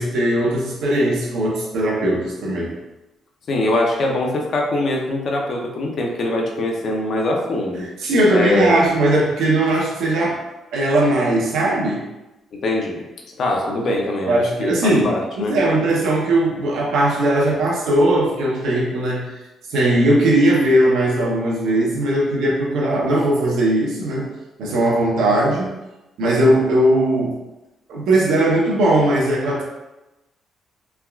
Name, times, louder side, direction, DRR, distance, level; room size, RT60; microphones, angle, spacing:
voice 1, 0.0-2.7 8.0-10.4 10.7-12.0 14.3-19.2 19.7-24.3 24.6-25.8 26.2-27.4 27.9-29.6, right 1 dB, 85° right, -3 dB, 0.7 m, -18 dB
voice 2, 3.5-7.9 8.3-8.8 12.6-13.0 13.4-15.6, left 1 dB, 55° left, 0 dB, 0.6 m, -22 dB
3.4 x 2.3 x 2.3 m, 1.0 s
cardioid pair, 90°, 0 cm